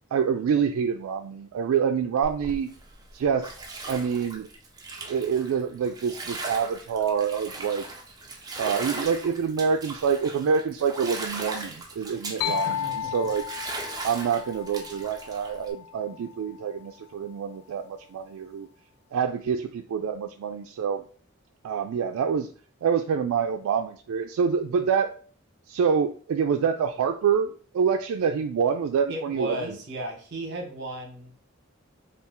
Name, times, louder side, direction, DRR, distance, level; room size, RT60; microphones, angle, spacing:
voice 1, 0.1-2.7 3.1-3.5 3.9-4.5 5.0-7.8 8.6-12.8 13.1-13.5 14.0-18.7 19.1-21.0 21.6-22.5 22.8-25.1 25.7-29.7, right 6 dB, 85° right, 5 dB, 0.3 m, -26 dB
Bathtub (filling or washing), 2.2-15.7, right 2 dB, 15° right, 0.4 m, -39 dB
sound 1, 12.4-16.1, left 10 dB, 80° left, 0.4 m, -33 dB
voice 2, 12.5-13.1 29.1-31.3, right 1 dB, 50° right, 2 dB, 0.9 m, -35 dB
4.2 x 2.3 x 3.5 m, 0.42 s
head